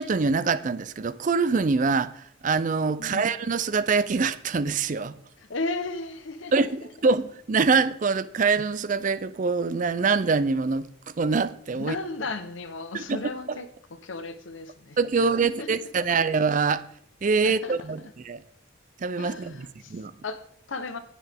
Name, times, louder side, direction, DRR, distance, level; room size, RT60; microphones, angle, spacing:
voice 1, 0.0-5.1 6.5-10.9 11.2-12.0 12.9-13.2 13.5-13.6 15.0-16.8 17.2-18.4 19.0-19.6 19.9-20.1, right 4 dB, 40° right, 0.4 m, -24 dB
voice 2, 3.0-3.3 5.4-6.9 11.8-15.7 17.4-17.8 18.0-18.1 19.2-21.0, left 3 dB, 75° left, 0.9 m, -35 dB
10.0 x 9.5 x 3.5 m
head